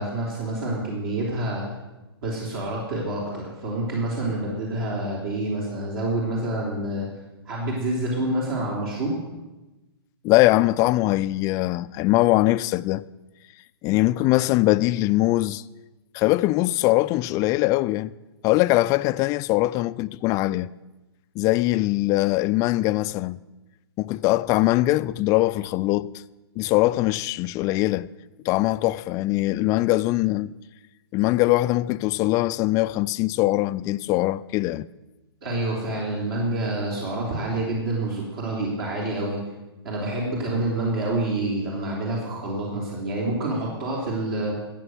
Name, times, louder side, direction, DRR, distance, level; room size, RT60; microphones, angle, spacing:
voice 1, 0.0-1.6 2.2-7.1 7.5-9.2 35.4-39.4 39.8-44.5, right 2 dB, 60° right, 3.7 m, -27 dB
voice 2, 10.2-13.1 13.8-15.6 16.1-18.1 18.4-20.7 21.4-23.4 24.0-26.1 26.6-28.1 28.4-30.5 31.1-34.9, left 18 dB, 25° left, 0.3 m, -22 dB
13.5 x 8.3 x 7.9 m
hypercardioid pair, 125°, 14 cm